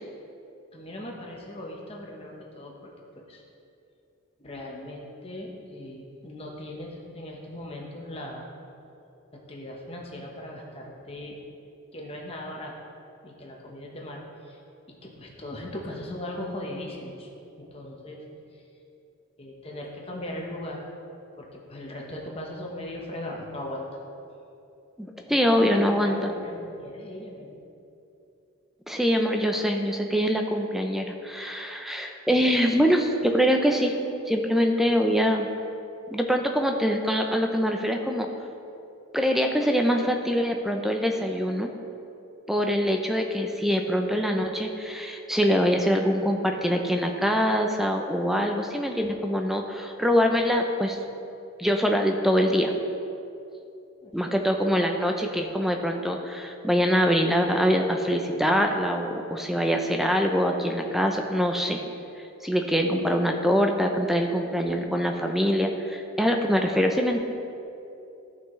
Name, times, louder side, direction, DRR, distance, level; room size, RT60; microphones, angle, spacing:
voice 1, 0.7-2.9 3.2-3.4 4.4-8.5 9.3-11.4 11.9-12.7 13.2-14.6 15.0-17.3 17.6-18.2 18.5-18.6 19.4-20.8 21.4-23.9 25.3-27.6 54.0-54.2, left 1 dB, 25° left, -1 dB, 1.1 m, -38 dB
voice 2, 25.0-26.3 28.9-34.0 34.3-35.5 36.1-38.3 39.1-41.7 42.5-51.0 51.6-52.7 54.1-61.8 62.4-67.2, equal, ahead, 3 dB, 0.5 m, -24 dB
14.0 x 5.7 x 3.2 m, 2.7 s
head